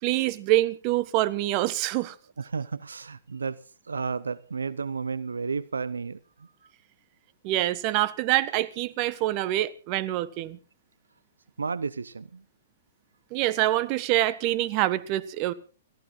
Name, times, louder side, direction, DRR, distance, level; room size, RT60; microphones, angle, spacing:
voice 1, 0.0-2.1 7.4-10.6 13.3-15.5, right 15 dB, 40° right, 1.3 m, -25 dB
voice 2, 2.4-3.6 3.9-6.5 11.6-12.4, right 5 dB, 85° right, 0.7 m, -32 dB
30.0 x 15.0 x 2.4 m
hypercardioid pair, 115°, 0 cm